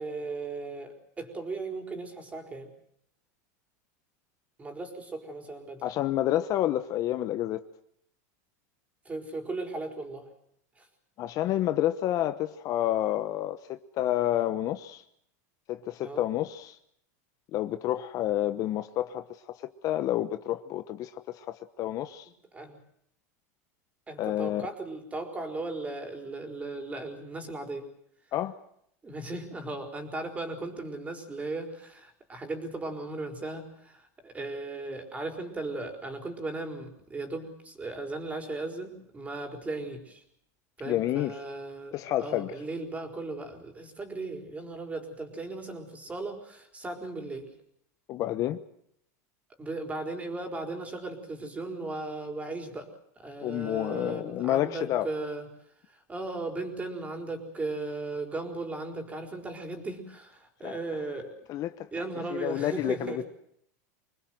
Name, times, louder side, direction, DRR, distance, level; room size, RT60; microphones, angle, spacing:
voice 1, 0.0-2.7 4.6-5.8 9.0-10.3 10.8-10.9 16.0-16.2 22.5-22.8 24.1-27.9 29.0-40.2 40.8-47.5 49.6-52.9 53.2-55.5 55.9-61.3 61.9-63.2, right 2 dB, 15° right, 4.6 m, -37 dB
voice 2, 5.8-7.6 11.2-15.0 15.7-16.8 17.5-22.3 24.2-24.7 28.3-28.6 40.8-41.4 41.9-42.5 48.1-48.6 53.4-55.1 60.6-60.7 61.5-61.9 62.3-63.2, left 13 dB, 40° left, 1.1 m, -29 dB
25.5 x 20.0 x 7.8 m
supercardioid pair, 125°, 9 cm